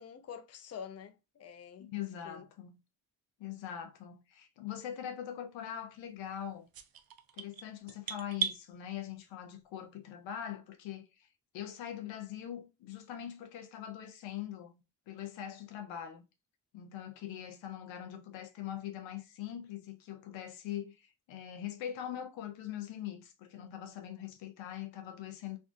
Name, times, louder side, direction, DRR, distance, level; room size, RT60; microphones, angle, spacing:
voice 1, 0.0-2.5, left 7 dB, 35° left, 0.5 m, -47 dB
voice 2, 1.8-2.8 3.4-6.7 7.3-11.3 11.5-16.2 16.7-25.6, left 10 dB, 90° left, 0.6 m, -42 dB
sound 1, 6.7-8.6, right 8 dB, 55° right, 0.5 m, -37 dB
2.6 x 2.4 x 2.5 m
supercardioid pair, 45°, 44 cm